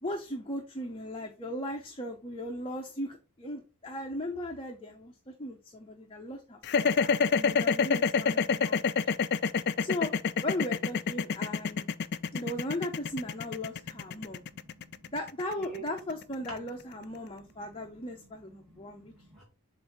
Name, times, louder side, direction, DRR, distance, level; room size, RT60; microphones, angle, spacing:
voice 1, 0.0-8.9 9.8-10.1 10.4-11.9 12.3-14.4 15.1-19.1, left 1 dB, 25° left, 2 dB, 0.8 m, -37 dB
sound 1, 6.6-16.8, left 5 dB, 45° left, 0.4 m, -27 dB
voice 2, 13.3-15.2 15.6-15.8 16.5-19.4, right 3 dB, 5° left, -3 dB, 2.2 m, -51 dB
7.5 x 2.7 x 5.7 m, 0.32 s
head